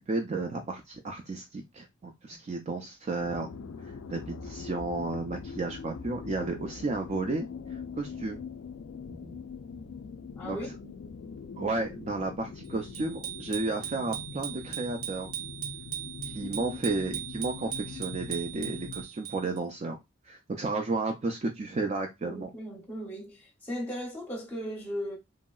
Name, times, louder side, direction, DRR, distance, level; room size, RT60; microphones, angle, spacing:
voice 1, 0.1-3.5 4.1-7.5 8.0-8.4 10.4-10.6 11.6-15.3 16.3-20.0 20.3-22.5, right 3 dB, 35° right, 0.4 m, -32 dB
sound 1, 3.2-19.1, left 5 dB, 85° left, 0.3 m, -42 dB
voice 2, 9.1-9.4 10.4-10.7 22.2-25.2, equal, 10° left, 0.7 m, -37 dB
Bicycle bell, 12.9-19.6, right 11 dB, 85° right, 0.9 m, -39 dB
3.0 x 2.7 x 2.3 m
head